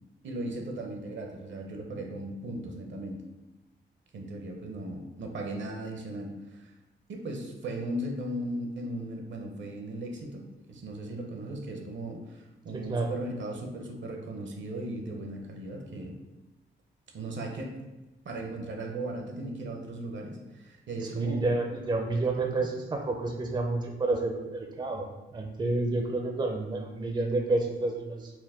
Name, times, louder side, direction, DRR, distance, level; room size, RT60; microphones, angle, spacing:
voice 1, 0.2-3.2 4.1-6.7 7.1-16.2 17.1-17.8 18.2-21.5 22.4-22.7, right 1 dB, 65° right, 2 dB, 0.7 m, -37 dB
voice 2, 12.7-13.1 21.1-28.3, right 2 dB, 20° right, 3 dB, 0.5 m, -30 dB
4.4 x 2.1 x 3.6 m, 1.1 s
cardioid pair, 80°, 21 cm